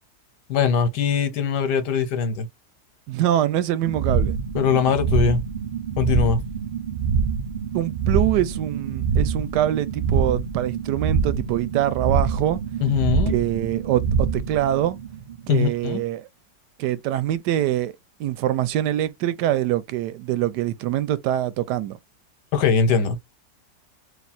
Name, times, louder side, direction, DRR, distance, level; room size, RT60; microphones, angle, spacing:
voice 1, 0.5-2.5 4.5-5.4 6.0-6.4 12.8-13.3 15.5-16.0 22.5-23.2, left 6 dB, 90° left, 1.5 m, -21 dB
voice 2, 3.1-4.3 7.7-12.6 13.3-15.0 15.5-16.2 16.8-22.0, right 12 dB, 90° right, 1.2 m, -24 dB
sound 1, 3.8-15.6, right 5 dB, 55° right, 0.5 m, -25 dB
3.4 x 2.7 x 4.1 m
omnidirectional pair, 1.7 m